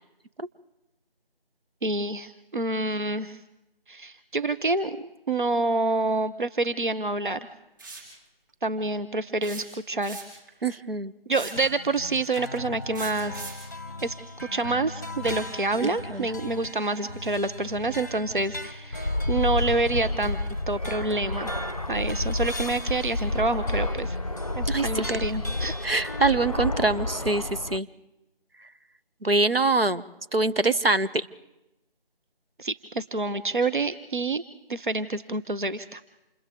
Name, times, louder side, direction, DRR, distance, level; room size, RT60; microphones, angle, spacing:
voice 1, 1.8-3.4 3.9-7.5 8.6-10.2 11.3-13.4 14.0-14.1 14.4-20.4 20.7-21.5 21.9-24.2 24.5-25.8 32.6-34.4 34.7-36.0, right 2 dB, 55° right, 12 dB, 1.2 m, -27 dB
sound 1, 7.8-8.1 9.4-10.5 11.3-11.7 12.9-13.7, right 3 dB, 20° right, 4.4 m, -40 dB
voice 2, 10.6-11.1 16.1-16.3 24.6-25.1 25.8-27.9 29.2-30.0 30.3-31.3, right 3 dB, 75° right, 11 dB, 1.4 m, -24 dB
sound 2, 11.4-27.7, left 1 dB, 20° left, 1.0 m, -40 dB
Fixed-wing aircraft airplane, 18.9-27.8, left 2 dB, 40° left, 0.7 m, -30 dB
28.5 x 28.0 x 3.9 m, 0.94 s
figure-of-eight pair, 165°, 29 cm